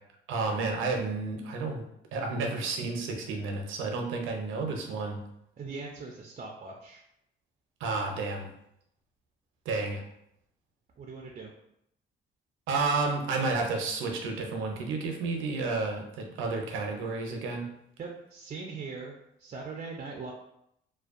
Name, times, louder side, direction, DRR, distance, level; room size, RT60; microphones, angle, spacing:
voice 1, 0.3-1.9 2.1-5.2 7.8-8.5 9.7-10.0 12.7-17.7, right 3 dB, 90° right, 3 dB, 0.5 m, -31 dB
voice 2, 5.6-7.0 11.0-11.5 18.0-20.3, right 4 dB, 35° right, 0 dB, 0.4 m, -41 dB
2.5 x 2.2 x 2.4 m, 0.77 s
cardioid pair, 90°, 20 cm